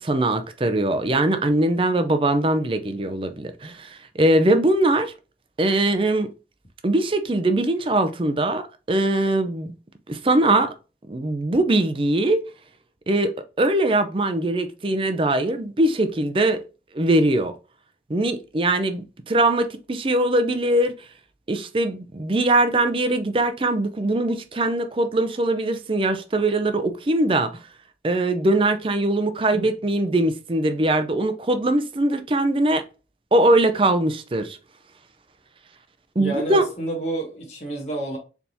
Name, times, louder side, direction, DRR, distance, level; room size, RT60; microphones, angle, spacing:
voice 1, 0.0-5.1 5.6-6.3 6.8-9.7 10.1-10.7 11.1-12.4 13.1-16.6 16.9-17.5 18.1-20.9 21.5-27.5 28.0-32.8 33.3-34.6 36.2-36.6, right 1 dB, 30° right, 0.5 m, -21 dB
voice 2, 36.1-38.2, right 2 dB, 40° left, 1.3 m, -29 dB
4.3 x 3.4 x 2.7 m
head